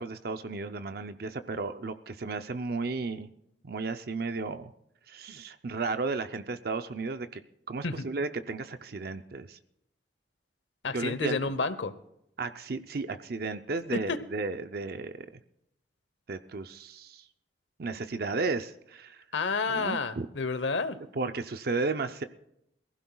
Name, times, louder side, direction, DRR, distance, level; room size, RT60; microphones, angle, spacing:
voice 1, 0.0-3.3 3.6-4.7 5.1-7.4 7.7-9.6 10.9-11.4 12.4-15.2 16.3-17.3 17.8-19.2 19.7-20.3 21.1-22.2, right 3 dB, 55° right, 9 dB, 0.6 m, -34 dB
voice 2, 10.8-11.9 13.9-14.2 19.3-21.0, left 4 dB, 90° left, 13 dB, 0.9 m, -30 dB
22.5 x 15.5 x 2.3 m, 0.79 s
head